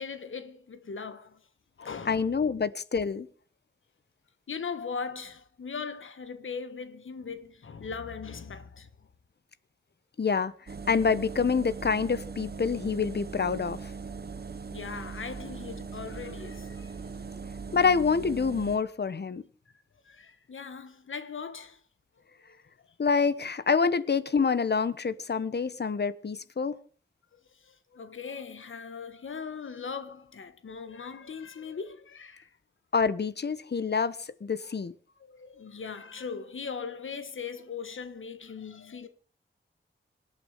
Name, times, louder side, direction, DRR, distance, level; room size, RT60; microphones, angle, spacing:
voice 1, 0.0-1.4 1.8-2.4 4.5-9.1 14.7-17.3 20.0-21.8 22.4-22.9 27.3-32.5 34.6-34.7 35.2-39.1, left 5 dB, 80° left, 1.5 m, -40 dB
voice 2, 2.1-3.3 10.2-10.5 10.9-13.8 17.7-19.4 23.0-26.7 32.9-34.9, left 5 dB, 55° left, 1.1 m, -27 dB
sound 1, 10.7-18.8, right 5 dB, 55° right, 1.2 m, -40 dB
26.0 x 8.8 x 5.1 m
wide cardioid pair, 80°, 20 cm